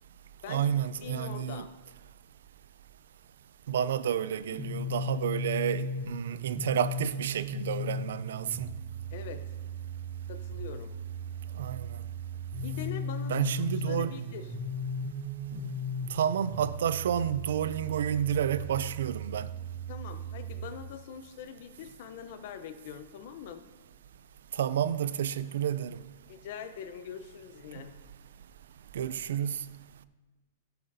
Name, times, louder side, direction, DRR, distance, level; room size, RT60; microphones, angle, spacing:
voice 1, 0.5-1.7 3.7-8.7 11.6-12.0 13.3-14.2 16.1-19.5 24.5-26.0 27.8-27.9 28.9-29.6, right 9 dB, 80° right, 0.4 m, -30 dB
voice 2, 1.0-1.7 9.1-9.4 10.3-10.9 12.6-13.5 13.9-14.5 19.9-23.6 26.3-27.9, left 8 dB, 55° left, 0.6 m, -43 dB
sound 1, 4.5-20.5, equal, 80° left, 2.8 m, -37 dB
13.0 x 6.8 x 2.7 m
supercardioid pair, 150°, 0 cm